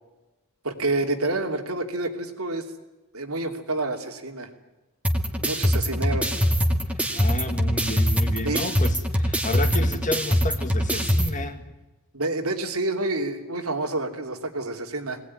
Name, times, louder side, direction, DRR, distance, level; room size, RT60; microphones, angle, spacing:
voice 1, 0.6-2.6 3.1-4.5 5.4-6.3 8.4-8.6 12.1-15.2, right 2 dB, 90° right, 4 dB, 3.0 m, -28 dB
sound 1, 5.0-11.3, equal, 5° right, 2.1 m, -23 dB
voice 2, 6.9-11.7, left 1 dB, 35° left, 8 dB, 2.1 m, -31 dB
21.5 x 19.0 x 9.9 m, 1.1 s
head